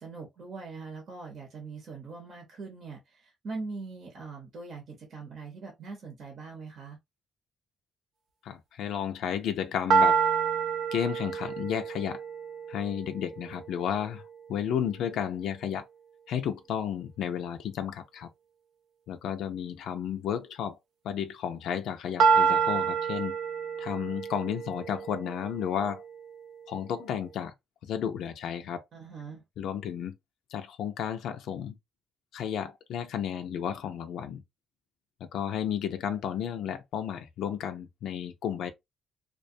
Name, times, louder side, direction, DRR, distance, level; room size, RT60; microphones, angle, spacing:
voice 1, 0.0-7.0 28.9-29.4, right 4 dB, 60° right, 0.9 m, -42 dB
voice 2, 8.4-10.2 10.9-12.2 12.7-14.2 14.5-15.9 16.3-18.3 19.1-20.7 21.0-23.4 23.8-26.0 26.7-27.5 27.9-28.8 29.6-30.1 30.5-31.8 32.3-34.4 35.2-38.7, left 9 dB, 80° left, 0.4 m, -32 dB
sound 1, 9.9-13.9 22.2-26.3, right 5 dB, 80° right, 0.5 m, -28 dB
2.3 x 2.2 x 2.6 m
cardioid pair, 90°, 0 cm